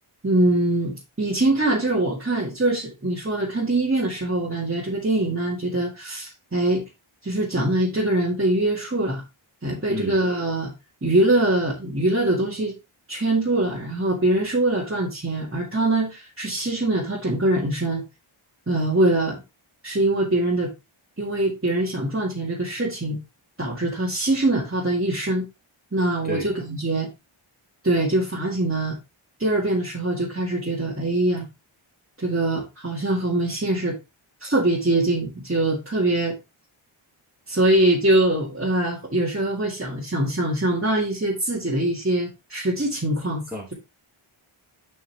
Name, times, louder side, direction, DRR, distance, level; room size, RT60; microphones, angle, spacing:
voice 1, 0.2-6.8 7.2-9.2 9.6-10.7 11.0-12.8 13.1-18.0 18.7-19.4 19.8-20.7 21.2-23.2 23.6-25.5 25.9-27.1 27.8-29.0 29.4-31.5 32.2-34.0 34.4-36.3 37.5-43.4, right 1 dB, 25° right, -5 dB, 1.9 m, -23 dB
voice 2, 9.9-10.2 26.2-26.5 43.5-43.7, left 1 dB, 5° right, -6 dB, 2.4 m, -31 dB
7.3 x 5.5 x 3.4 m, 0.25 s
wide cardioid pair, 80°, 50 cm